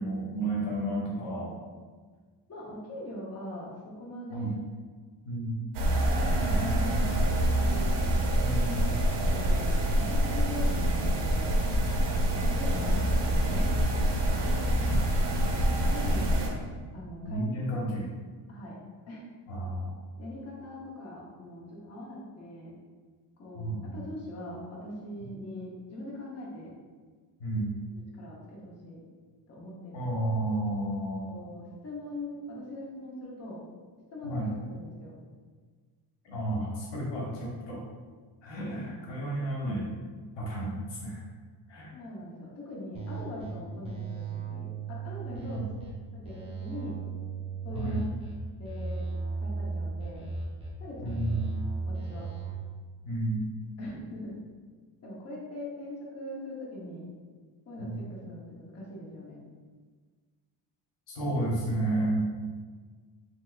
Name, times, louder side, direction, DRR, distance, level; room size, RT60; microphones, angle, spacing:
voice 1, 0.0-1.5 4.3-4.5 5.3-5.6 8.4-8.9 14.9-15.0 17.2-18.1 19.5-19.9 23.5-24.0 27.4-27.7 29.9-31.3 34.2-34.5 36.2-37.8 38.4-40.0 40.4-41.2 41.7-41.9 43.8-43.9 45.4-45.6 47.7-48.0 51.0-51.5 53.0-53.4 57.8-58.0 61.1-62.3, right 1 dB, 85° left, -4 dB, 1.1 m, -32 dB
voice 2, 2.5-4.6 6.1-8.2 8.9-9.0 9.3-11.5 12.5-13.7 15.8-16.6 16.9-17.4 17.8-17.9 18.5-18.8 19.1-19.2 20.2-22.8 23.4-26.7 28.1-29.0 29.5-30.1 31.3-33.6 34.1-35.1 37.4-37.5 38.6-39.5 41.9-45.6 46.1-47.0 47.6-48.0 48.6-49.0 49.4-50.2 50.8-51.3 51.9-52.3 53.8-54.4 55.0-57.1 57.7-59.4, left 1 dB, 35° left, -4 dB, 0.8 m, -41 dB
sound 1, 5.7-16.5, right 1 dB, 70° right, 0.7 m, -26 dB
sound 2, 42.9-43.5 43.8-45.9 46.2-48.3 48.6-50.7 51.0-52.5, right 4 dB, 15° right, 0.8 m, -36 dB
3.3 x 3.3 x 2.4 m, 1.5 s
cardioid pair, 125°, 43 cm